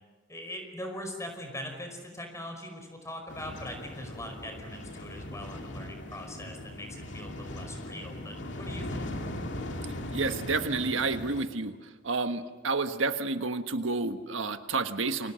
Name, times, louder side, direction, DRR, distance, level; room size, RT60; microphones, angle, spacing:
voice 1, 0.3-9.1, left 1 dB, 15° left, 4 dB, 5.3 m, -41 dB
sound 1, 3.3-11.4, left 1 dB, 65° left, 2.4 m, -39 dB
voice 2, 10.1-11.7 12.0-15.3, right 3 dB, 85° right, 8 dB, 1.4 m, -30 dB
29.0 x 24.0 x 6.4 m, 1.3 s
head